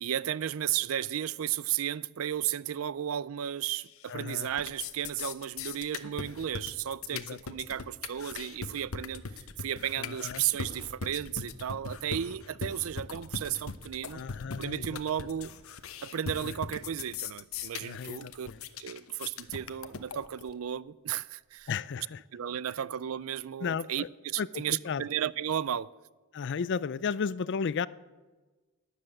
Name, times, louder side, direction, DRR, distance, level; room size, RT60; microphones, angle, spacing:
voice 1, 0.0-14.2 14.6-15.5 16.0-18.5 18.8-21.7 22.3-25.9, right 10 dB, 75° right, 0.4 m, -34 dB
sound 1, 3.8-4.2 4.5-20.5, left 5 dB, 75° left, 0.9 m, -40 dB
voice 2, 4.1-4.5 7.1-7.4 10.0-10.4 14.1-14.9 16.4-16.5 17.8-18.6 21.7-22.2 23.6-24.1 24.4-25.0 26.3-27.9, left 6 dB, 55° left, 0.4 m, -34 dB
12.5 x 10.0 x 8.8 m
head